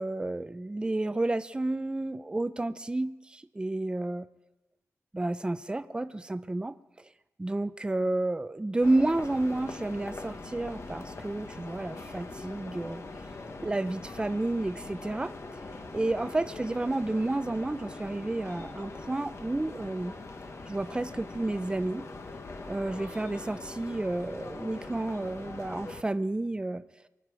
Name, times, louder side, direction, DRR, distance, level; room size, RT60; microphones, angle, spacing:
voice 1, 0.0-4.3 5.1-6.7 7.4-13.0 13.6-15.3 15.9-20.1 20.7-22.1 22.7-26.8, right 2 dB, 15° right, 12 dB, 0.5 m, -31 dB
sound 1, 8.8-26.0, left 3 dB, 50° left, 1.1 m, -42 dB
23.0 x 9.3 x 4.9 m, 1.0 s
wide cardioid pair, 125°, 6 cm